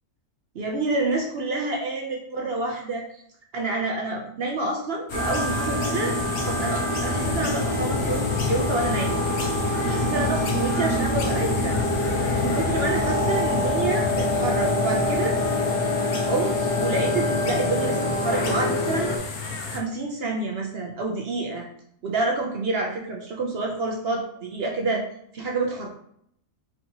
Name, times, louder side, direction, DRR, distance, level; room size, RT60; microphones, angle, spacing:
voice 1, 0.5-3.1 3.5-9.2 9.9-11.8 12.4-15.4 16.2-19.1 19.7-21.7 22.0-25.0 25.3-25.9, right 3 dB, 60° right, 1 dB, 0.6 m, -28 dB
sound 1, 5.1-19.8, left 5 dB, 75° left, 1.2 m, -30 dB
sound 2, 5.1-19.2, left 1 dB, 15° left, 0.3 m, -26 dB
4.5 x 2.7 x 2.8 m, 0.68 s
omnidirectional pair, 1.6 m